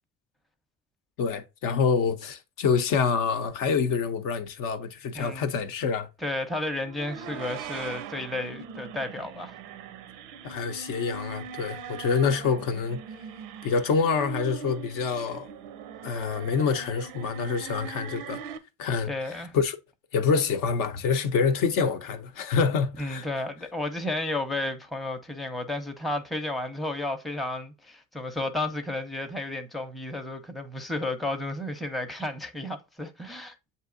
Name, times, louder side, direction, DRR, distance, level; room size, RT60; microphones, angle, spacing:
voice 1, 1.2-6.1 10.4-13.0 13.6-15.5 16.0-18.4 18.8-19.8 20.1-23.3, left 5 dB, 65° left, 0.6 m, -26 dB
voice 2, 6.2-9.6 19.1-19.5 23.0-33.6, left 2 dB, ahead, 0.6 m, -32 dB
sound 1, 6.8-18.6, right 7 dB, 90° right, 0.6 m, -41 dB
7.5 x 2.7 x 2.5 m
supercardioid pair, 80°, 36 cm